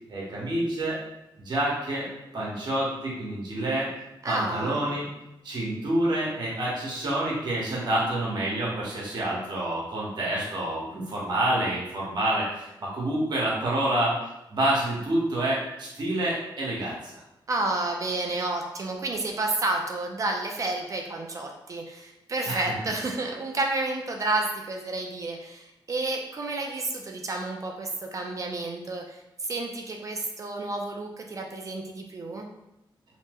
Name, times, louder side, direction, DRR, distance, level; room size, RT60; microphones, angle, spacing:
voice 1, 0.1-1.0 1.4-2.1 2.3-3.9 4.2-5.1 5.4-14.2 14.5-17.2 22.5-22.6, right 1 dB, 55° right, -5 dB, 1.1 m, -28 dB
voice 2, 4.2-4.9 17.5-32.5, right 2 dB, 40° right, 2 dB, 0.4 m, -30 dB
2.9 x 2.1 x 3.4 m, 0.92 s
wide cardioid pair, 125°, 9 cm